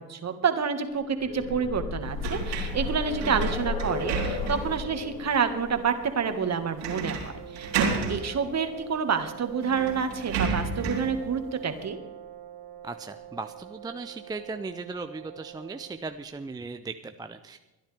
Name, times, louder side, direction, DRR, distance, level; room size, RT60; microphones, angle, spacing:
voice 1, 0.0-12.0, right 6 dB, 30° right, 8 dB, 1.7 m, -28 dB
sound 1, 1.0-8.8 9.9-10.0 10.4-10.5, left 3 dB, 55° left, 3.7 m, -35 dB
sound 2, 2.2-4.8 5.3-5.4 6.8-7.3 7.5-8.2 9.2-9.3 9.6-11.1, right 5 dB, 85° right, 4.0 m, -31 dB
sound 3, 7.1-16.1, right 10 dB, 50° right, 1.9 m, -45 dB
voice 2, 12.8-17.6, right 3 dB, 10° right, 8 dB, 0.4 m, -37 dB
23.5 x 10.5 x 3.4 m, 1.1 s
hypercardioid pair, 80°, 49 cm